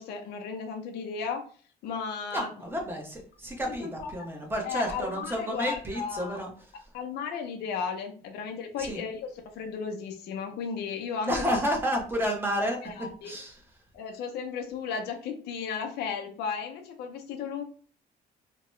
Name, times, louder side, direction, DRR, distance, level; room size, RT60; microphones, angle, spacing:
voice 1, 0.0-1.4 1.8-2.5 3.8-4.1 4.6-6.4 6.9-9.3 9.5-11.3 12.8-13.3 13.9-17.6, left 6 dB, 75° left, 4 dB, 0.6 m, -34 dB
voice 2, 2.3-6.5 8.8-9.0 11.2-13.6, equal, 15° right, 1 dB, 0.9 m, -31 dB
2.9 x 2.2 x 3.1 m, 0.42 s
cardioid pair, 110°, 17 cm